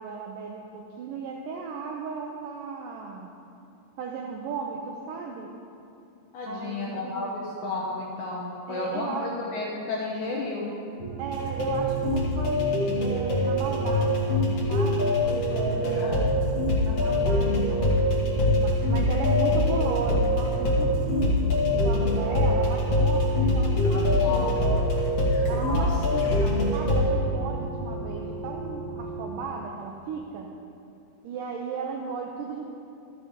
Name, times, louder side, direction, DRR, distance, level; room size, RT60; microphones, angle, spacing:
voice 1, 0.0-3.3 4.0-5.5 6.5-7.4 8.7-9.3 11.2-16.3 16.8-18.0 18.5-21.4 21.7-24.6 25.5-30.5 31.2-32.6, right 5 dB, 85° right, 0 dB, 1.9 m, -35 dB
voice 2, 6.3-10.7 15.8-16.2 23.8-24.5 25.7-25.9, left 3 dB, 70° left, -4 dB, 1.9 m, -32 dB
sound 1, 11.0-29.3, right 1 dB, 65° right, 3.0 m, -36 dB
sound 2, 11.3-27.0, left 1 dB, 55° left, 2.0 m, -24 dB
12.5 x 6.8 x 5.1 m, 2.7 s
omnidirectional pair, 4.6 m